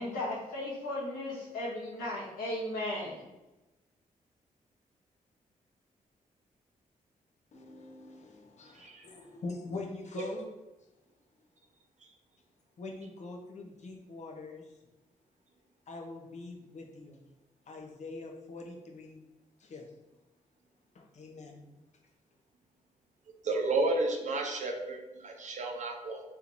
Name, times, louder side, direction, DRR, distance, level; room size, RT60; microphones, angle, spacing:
voice 1, 0.0-3.2, left 1 dB, 85° left, -6 dB, 1.3 m, -36 dB
voice 2, 7.5-10.5 12.8-14.7 15.9-17.3 17.7-19.2 19.6-19.9 20.9-21.8, left 2 dB, 55° left, 1 dB, 0.7 m, -43 dB
voice 3, 8.7-9.1 23.4-26.2, right 2 dB, 55° right, 3 dB, 0.7 m, -32 dB
3.4 x 3.0 x 2.5 m, 1.0 s
cardioid pair, 70°, 14 cm